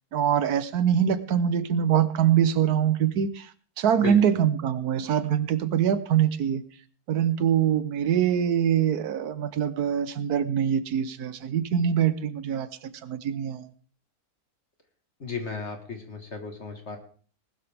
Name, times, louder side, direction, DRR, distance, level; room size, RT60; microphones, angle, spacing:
voice 1, 0.1-3.5 3.8-6.6 7.1-12.7 13.0-13.7, right 9 dB, 85° right, 14 dB, 1.4 m, -24 dB
voice 2, 4.0-4.3 15.2-17.0, left 5 dB, 50° left, 4 dB, 1.9 m, -35 dB
19.5 x 13.0 x 3.5 m, 0.43 s
omnidirectional pair, 1.6 m